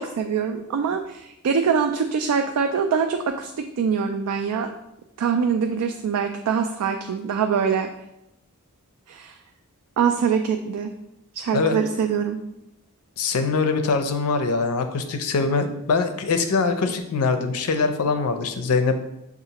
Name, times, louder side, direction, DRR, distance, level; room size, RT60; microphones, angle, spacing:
voice 1, 0.0-3.5 3.8-4.7 5.2-7.9 9.1-9.4 10.0-10.9 11.3-12.4, right 6 dB, 85° right, 5 dB, 0.3 m, -24 dB
voice 2, 13.2-19.1, left 4 dB, 75° left, 7 dB, 0.5 m, -23 dB
6.4 x 2.4 x 2.8 m, 0.86 s
head